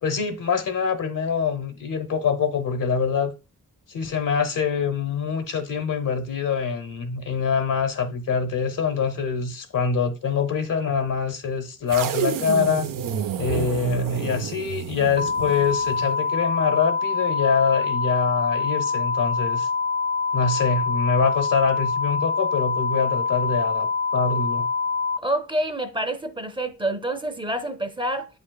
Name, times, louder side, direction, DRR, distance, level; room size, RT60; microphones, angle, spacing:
voice 1, 0.0-3.3 3.9-12.9 13.4-19.7 20.3-24.7, left 6 dB, 80° left, 0.9 m, -24 dB
sound 1, 11.9-16.2, right 9 dB, 85° right, 0.6 m, -29 dB
sound 2, 15.2-25.2, left 4 dB, 40° left, 0.5 m, -25 dB
voice 2, 25.2-28.3, right 1 dB, 15° right, 0.6 m, -27 dB
8.2 x 5.2 x 2.3 m
wide cardioid pair, 120°, 32 cm